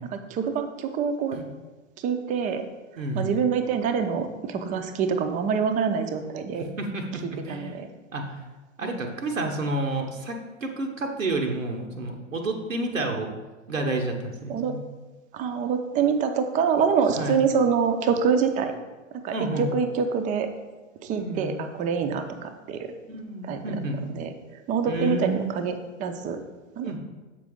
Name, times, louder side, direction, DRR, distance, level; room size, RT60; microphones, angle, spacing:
voice 1, 0.0-1.4 2.0-2.6 3.1-6.7 7.5-7.9 8.8-9.1 14.5-14.8 15.3-18.7 19.1-20.5 21.0-22.9 23.4-23.6 24.1-24.3 24.7-25.7 26.0-26.4 26.8-26.9, right 6 dB, 20° right, 7 dB, 0.5 m, -25 dB
voice 2, 3.0-3.3 6.6-7.7 8.1-8.2 8.8-13.3 13.7-14.8 17.2-17.4 19.3-19.7 21.1-21.5 23.1-24.0 24.9-25.5 26.8-27.0, right 2 dB, 85° right, 1 dB, 1.0 m, -30 dB
7.3 x 5.2 x 3.6 m, 1.2 s
figure-of-eight pair, 100°, 38 cm